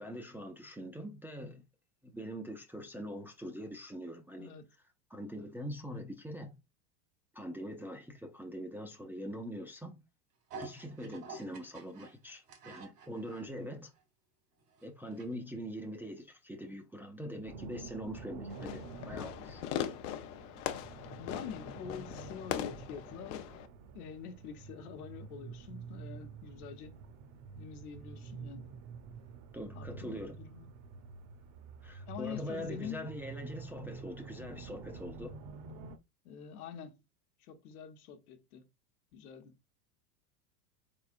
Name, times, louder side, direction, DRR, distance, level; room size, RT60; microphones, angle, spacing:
voice 1, 0.0-1.6 2.0-4.5 5.1-6.6 7.3-10.0 10.6-13.9 14.8-19.6 29.5-30.4 31.8-35.4, equal, 5° right, 0.4 m, -43 dB
voice 2, 4.4-4.7 21.2-23.5 23.9-27.0 27.6-28.7 29.7-30.7 32.1-33.1 36.2-37.0 37.4-38.7 39.1-39.5, left 7 dB, 70° left, 1.0 m, -46 dB
sound 1, 10.5-13.5 14.0-14.1 14.6-15.3 15.6-15.7, right 4 dB, 80° right, 1.8 m, -49 dB
sound 2, 17.5-36.0, right 5 dB, 45° right, 0.8 m, -48 dB
Fireworks, 18.5-23.7, left 10 dB, 50° left, 0.7 m, -40 dB
4.1 x 3.7 x 2.5 m
hypercardioid pair, 100°, 46 cm